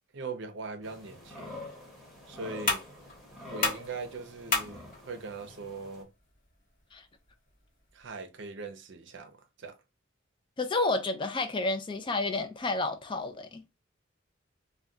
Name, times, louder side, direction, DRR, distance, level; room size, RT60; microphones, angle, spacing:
voice 1, 0.1-1.6 2.3-2.8 3.5-6.1 7.9-9.8, right 3 dB, 60° right, 0.6 m, -41 dB
sound 1, 0.8-6.0, left 1 dB, ahead, 0.9 m, -46 dB
sound 2, 1.1-8.1, left 3 dB, 45° left, 1.0 m, -37 dB
voice 2, 10.6-13.6, left 2 dB, 25° left, 0.4 m, -30 dB
2.2 x 2.2 x 3.7 m
head